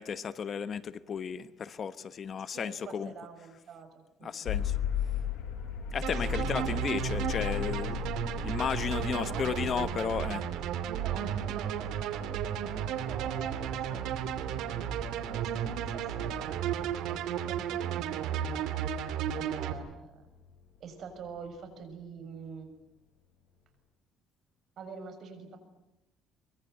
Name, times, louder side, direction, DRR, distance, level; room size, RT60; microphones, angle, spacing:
voice 1, 0.0-3.1 4.2-4.8 5.9-8.0 8.4-10.4, left 7 dB, 40° left, 1.0 m, -34 dB
voice 2, 2.5-4.5 6.2-7.1 9.0-9.5 10.8-18.7 19.3-20.3 20.8-22.7 24.8-25.6, right 5 dB, 50° right, 6.9 m, -46 dB
sound 1, 4.5-20.4, left 9 dB, 80° left, 6.9 m, -39 dB
sound 2, 6.0-19.7, right 9 dB, 80° right, 2.6 m, -33 dB
24.5 x 23.0 x 9.5 m
cardioid pair, 130°, 0 cm